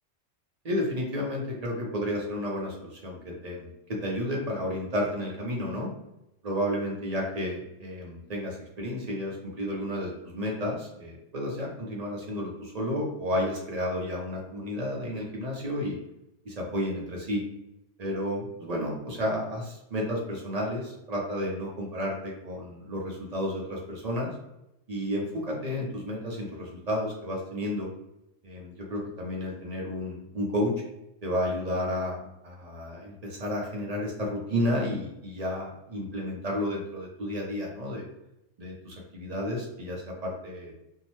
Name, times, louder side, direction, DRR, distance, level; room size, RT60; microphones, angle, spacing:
voice 1, 0.6-5.9 6.4-16.0 16.4-17.4 18.0-24.3 24.9-27.9 28.4-30.7 31.2-38.1 38.6-40.7, equal, 45° right, -2 dB, 0.6 m, -32 dB
2.7 x 2.1 x 2.9 m, 0.84 s
omnidirectional pair, 1.2 m